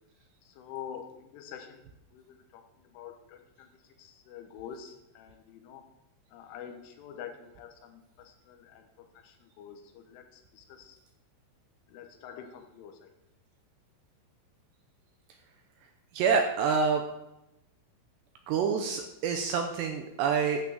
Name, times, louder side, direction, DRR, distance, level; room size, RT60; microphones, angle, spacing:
voice 1, 0.4-5.9 6.3-11.0 11.9-13.1, left 8 dB, 80° left, 5 dB, 3.6 m, -47 dB
voice 2, 16.1-17.0 18.5-20.6, right 6 dB, 80° right, 5 dB, 2.6 m, -27 dB
12.0 x 6.2 x 7.6 m, 0.90 s
omnidirectional pair, 5.7 m